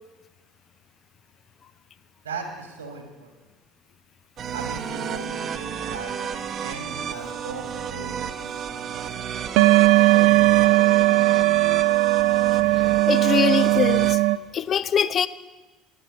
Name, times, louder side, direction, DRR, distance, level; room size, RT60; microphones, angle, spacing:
voice 1, 2.2-3.3 4.5-9.1 10.0-11.4, right 4 dB, 75° right, 4 dB, 2.3 m, -38 dB
sound 1, 4.4-14.2, right 7 dB, 40° right, 1.0 m, -32 dB
sound 2, 9.6-14.4, right 18 dB, 60° right, 0.4 m, -18 dB
voice 2, 13.1-14.2 14.5-15.3, left 7 dB, 40° left, 14 dB, 0.6 m, -22 dB
15.5 x 11.5 x 5.3 m, 1.2 s
figure-of-eight pair, 60°, 0 cm